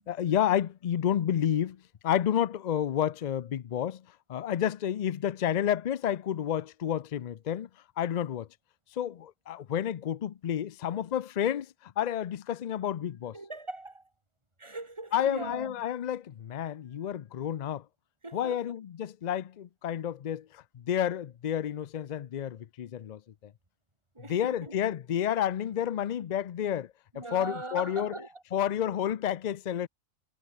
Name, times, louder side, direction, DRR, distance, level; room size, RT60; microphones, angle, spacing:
voice 1, 0.1-4.0 4.3-7.7 8.0-8.5 8.9-13.4 15.1-17.8 18.3-23.5 24.3-28.1 28.5-29.9, left 10 dB, 65° left, 0.4 m, -30 dB
voice 2, 13.3-14.1 14.6-15.9 18.2-18.7 24.1-24.7 27.1-28.4, right 2 dB, 20° right, 2.5 m, -40 dB
omnidirectional pair, 1.3 m